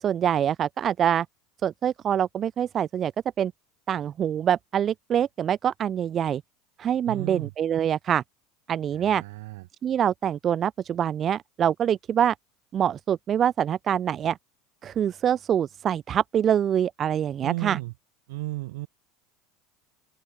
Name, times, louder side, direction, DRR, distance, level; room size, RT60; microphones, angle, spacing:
voice 1, 0.0-1.3 1.6-3.1 3.4-3.5 3.9-6.4 6.8-8.2 8.7-9.2 9.8-12.3 12.7-14.4 14.8-17.8, right 9 dB, 40° right, 0.3 m, -25 dB
voice 2, 7.0-7.5 8.9-9.7 17.4-17.9 18.3-18.9, right 20 dB, 75° right, 4.3 m, -34 dB
open air
hypercardioid pair, 90°, 0 cm